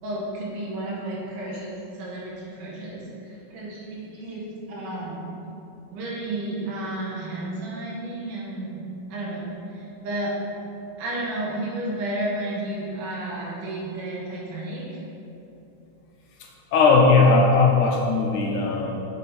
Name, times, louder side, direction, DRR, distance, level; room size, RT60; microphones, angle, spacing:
voice 1, 0.0-5.3 5.9-8.8 9.1-10.3 11.0-15.0, right 1 dB, 75° right, -5 dB, 2.9 m, -32 dB
voice 2, 16.7-19.0, left 3 dB, 75° left, -1 dB, 2.0 m, -18 dB
7.4 x 6.4 x 4.0 m, 2.9 s
omnidirectional pair, 3.8 m